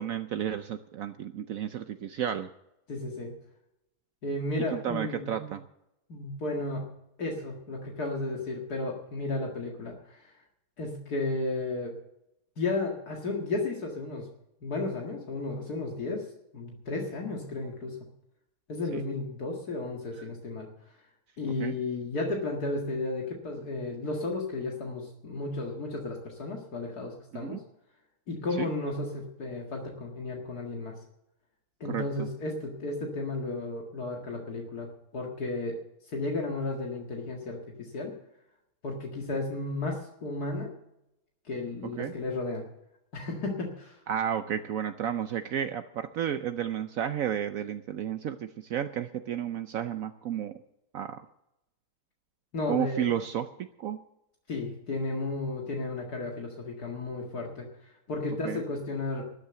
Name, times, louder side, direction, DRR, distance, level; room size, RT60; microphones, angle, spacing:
voice 1, 0.0-2.5 4.7-5.7 18.9-19.0 21.6-21.7 27.3-27.6 28.6-28.7 31.9-32.3 42.0-42.1 44.1-48.4 48.7-50.5 50.9-51.2 52.7-53.5 53.8-54.0 58.4-58.6, right 9 dB, 65° right, 9 dB, 1.0 m, -32 dB
voice 2, 2.9-3.3 4.2-5.3 6.1-6.9 7.2-10.3 10.8-11.9 12.6-14.3 14.6-16.3 16.5-18.0 18.7-20.7 21.4-27.6 28.3-30.9 31.8-34.9 35.1-35.8 36.1-38.1 38.8-40.7 41.5-42.6 43.1-44.0 52.5-53.0 54.5-57.7 58.1-59.3, left 2 dB, 75° left, 0 dB, 2.4 m, -33 dB
13.0 x 10.0 x 7.9 m, 0.85 s
omnidirectional pair, 1.7 m